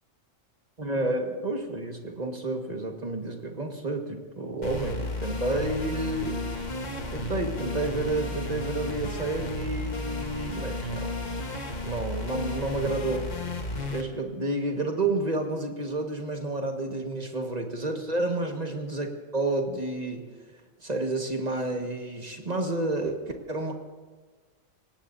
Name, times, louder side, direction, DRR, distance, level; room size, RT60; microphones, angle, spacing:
voice 1, 0.8-6.4 7.1-11.2 11.9-13.3 13.9-19.1 19.3-20.3 20.8-23.2 23.5-23.7, right 2 dB, 30° right, 2 dB, 1.7 m, -30 dB
sound 1, 4.6-14.0, left 2 dB, 35° left, 1.4 m, -33 dB
27.5 x 17.5 x 2.7 m, 1.3 s
omnidirectional pair, 1.4 m